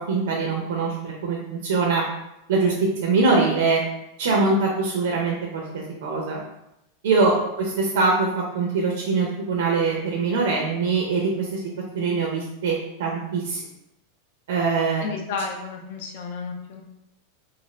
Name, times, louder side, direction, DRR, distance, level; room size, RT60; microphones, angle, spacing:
voice 1, 0.1-2.0 2.5-2.7 3.0-3.8 4.2-6.4 7.0-8.3 8.5-11.6 11.9-13.6 14.5-15.0, right 4 dB, 80° right, -2 dB, 0.6 m, -23 dB
voice 2, 15.0-16.8, left 4 dB, 60° left, 2 dB, 0.5 m, -32 dB
2.5 x 2.4 x 3.1 m, 0.86 s
supercardioid pair, 170°, 0 cm